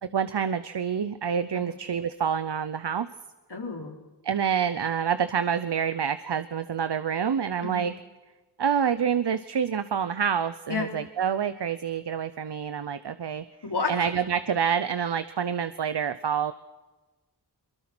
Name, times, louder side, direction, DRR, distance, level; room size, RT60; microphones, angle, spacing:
voice 1, 0.0-3.1 4.2-7.9 8.6-13.4 13.9-16.5, right 7 dB, 75° right, 12 dB, 0.8 m, -27 dB
voice 2, 3.5-4.0 7.6-7.9 10.7-10.9 13.6-13.9, left 4 dB, 70° left, 0 dB, 4.1 m, -30 dB
23.0 x 22.5 x 6.1 m, 1.2 s
wide cardioid pair, 65°, 41 cm